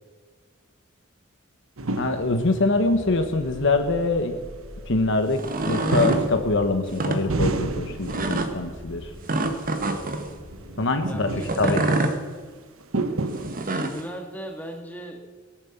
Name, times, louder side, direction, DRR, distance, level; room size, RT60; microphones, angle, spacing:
sound 1, 1.8-2.8 3.2-3.3 3.7-3.8 5.9-9.0 9.3-9.9 10.3-12.1 12.8-14.0, right 2 dB, 80° right, 1.0 m, -30 dB
voice 1, 2.0-4.3 4.9-9.1 10.8-12.0, left 2 dB, 65° left, 7 dB, 1.1 m, -24 dB
sound 2, 2.0-10.8, equal, 35° left, 3.6 m, -44 dB
sound 3, 5.3-6.2 6.9-7.2 8.1-8.5 9.3-10.2 11.4-12.2 13.4-14.0, right 2 dB, 45° right, 1.3 m, -25 dB
voice 2, 11.1-11.8 13.6-15.2, equal, 10° left, 2 dB, 2.0 m, -36 dB
18.0 x 9.1 x 7.2 m, 1.5 s
head